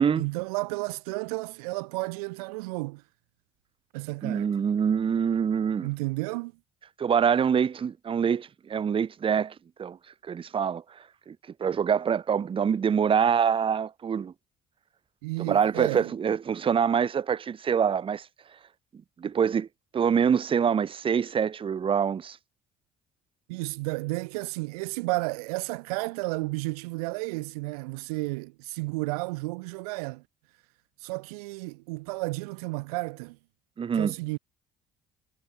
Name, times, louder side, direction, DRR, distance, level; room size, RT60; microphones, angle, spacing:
voice 1, 0.2-3.0 3.9-4.5 5.8-6.5 15.2-16.1 23.5-30.2 31.0-33.4 33.9-34.4, right 25 dB, 70° right, 0.5 m, -32 dB
voice 2, 4.2-5.9 7.0-10.0 10.2-10.8 11.3-14.3 15.4-18.3 19.2-19.7 19.9-22.4 33.8-34.1, right 7 dB, 25° right, 0.6 m, -25 dB
figure-of-eight pair, 55°, 20 cm